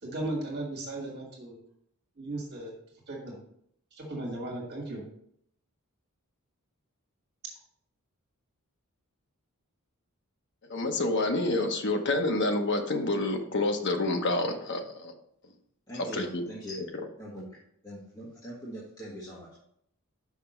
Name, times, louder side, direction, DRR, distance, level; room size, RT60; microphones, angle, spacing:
voice 1, 0.0-1.6 2.2-2.7 3.1-3.4 4.0-5.0, right 2 dB, 50° right, -1 dB, 1.9 m, -36 dB
voice 2, 10.7-15.1 16.1-16.4, left 2 dB, 55° left, 4 dB, 0.9 m, -28 dB
voice 3, 15.9-16.8 17.2-17.6 17.8-19.6, equal, 20° left, -8 dB, 1.6 m, -41 dB
5.9 x 5.8 x 4.4 m, 0.70 s
head